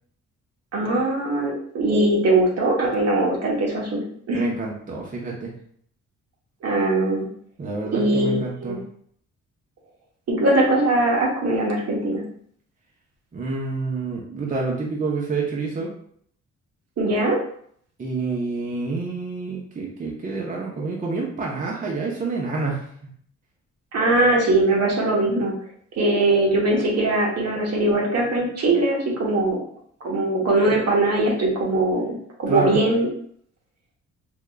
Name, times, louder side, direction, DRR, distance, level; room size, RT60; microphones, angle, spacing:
voice 1, 0.7-4.5 6.6-7.3 7.9-8.8 10.3-12.2 17.0-17.4 23.9-25.5 26.0-29.6 30.0-33.1, right 2 dB, 55° right, -2 dB, 1.0 m, -21 dB
voice 2, 4.3-5.5 7.6-8.8 13.3-15.9 18.0-22.9 32.5-32.8, right 3 dB, 25° right, -2 dB, 0.7 m, -28 dB
3.7 x 2.8 x 2.2 m, 0.62 s
cardioid pair, 90°, 30 cm